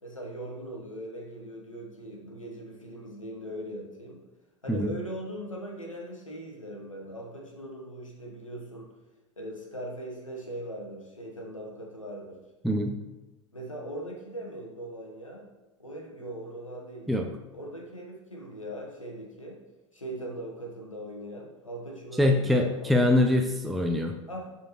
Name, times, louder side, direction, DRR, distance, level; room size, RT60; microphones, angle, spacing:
voice 1, 0.0-4.2 4.6-8.9 9.4-12.4 13.5-15.5 15.8-17.1 17.5-19.6 19.9-23.4 24.3-24.6, right 1 dB, 90° left, 0 dB, 1.3 m, -40 dB
voice 2, 12.6-13.0 17.1-17.3 22.2-24.1, left 1 dB, ahead, 2 dB, 0.5 m, -23 dB
11.0 x 4.4 x 3.1 m, 1.1 s
figure-of-eight pair, 80°, 16 cm